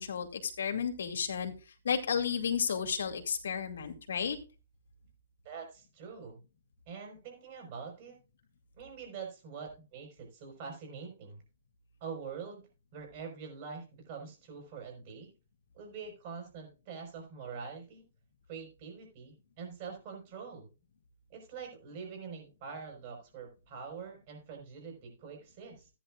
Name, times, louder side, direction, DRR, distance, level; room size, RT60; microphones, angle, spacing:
voice 1, 0.0-1.5 1.8-4.4, left 7 dB, 85° left, 4 dB, 2.3 m, -32 dB
voice 2, 5.4-6.4 6.9-8.2 8.8-11.4 12.0-12.6 12.9-15.3 15.8-18.0 18.5-20.7 21.3-25.9, right 5 dB, 35° right, 2 dB, 5.2 m, -45 dB
14.5 x 10.0 x 2.5 m, 0.31 s
hypercardioid pair, 165°, 0 cm